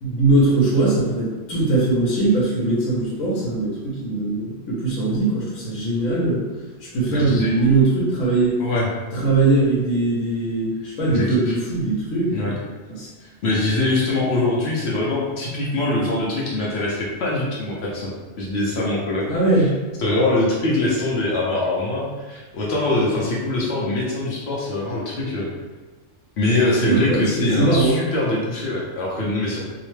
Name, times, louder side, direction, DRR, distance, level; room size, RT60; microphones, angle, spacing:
voice 1, 0.0-6.4 6.9-8.6 9.1-12.5 12.9-13.1 19.3-19.7 26.8-27.9, right 2 dB, 85° left, -6 dB, 1.1 m, -20 dB
voice 2, 7.1-7.7 8.6-8.9 11.1-11.5 12.3-12.5 13.2-18.1 18.4-19.3 19.5-19.6 20.0-25.5 26.4-29.6, left 2 dB, 60° left, -5 dB, 0.8 m, -23 dB
2.8 x 2.1 x 3.1 m, 1.3 s
omnidirectional pair, 1.4 m